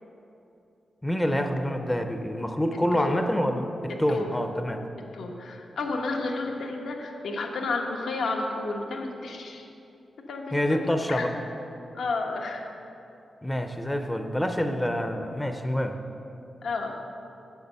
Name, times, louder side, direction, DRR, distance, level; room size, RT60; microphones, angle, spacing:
voice 1, 1.0-4.8 10.5-11.3 13.4-16.0, equal, 10° left, 6 dB, 0.5 m, -27 dB
voice 2, 2.9-3.2 4.1-4.4 5.1-9.7 10.3-11.3 11.9-12.7 16.6-16.9, left 3 dB, 80° left, 2 dB, 1.1 m, -31 dB
7.5 x 6.8 x 6.7 m, 2.8 s
wide cardioid pair, 125°, 0 cm